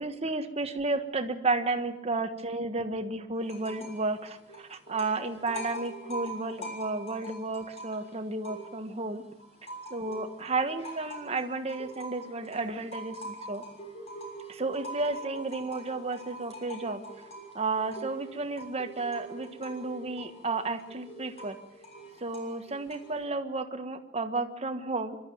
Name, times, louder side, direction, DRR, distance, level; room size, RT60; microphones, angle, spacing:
voice 1, 0.0-9.2 9.9-13.6 14.5-17.0 17.5-21.6 22.2-25.2, right 3 dB, 35° right, 7 dB, 1.4 m, -32 dB
sound 1, 3.4-4.1 4.3-9.0 9.4-23.2, right 1 dB, 35° left, 6.4 m, -43 dB
26.0 x 12.5 x 9.2 m, 0.88 s
head